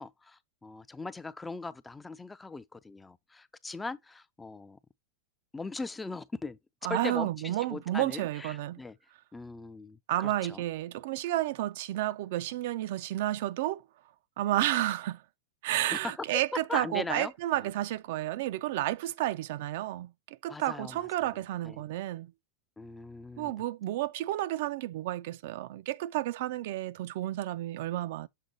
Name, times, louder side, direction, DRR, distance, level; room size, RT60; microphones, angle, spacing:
voice 1, 0.0-4.8 5.5-6.6 6.9-8.9 9.3-10.6 15.9-16.0 16.7-17.7 20.5-21.0 21.6-21.8 22.8-23.5, left 3 dB, 10° left, 0.3 m, -40 dB
voice 2, 6.8-8.8 10.1-13.8 14.4-15.2 15.6-22.3 23.4-28.3, right 14 dB, 65° right, 0.3 m, -31 dB
6.7 x 3.8 x 3.9 m
supercardioid pair, 135°, 0 cm